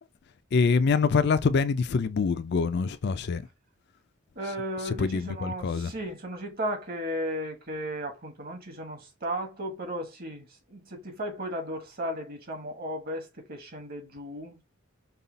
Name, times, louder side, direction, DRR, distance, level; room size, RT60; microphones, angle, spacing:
voice 1, 0.5-3.4 4.9-5.9, left 5 dB, 55° left, 0.4 m, -25 dB
voice 2, 4.3-14.6, equal, 50° right, 1.4 m, -35 dB
5.4 x 2.3 x 3.9 m
head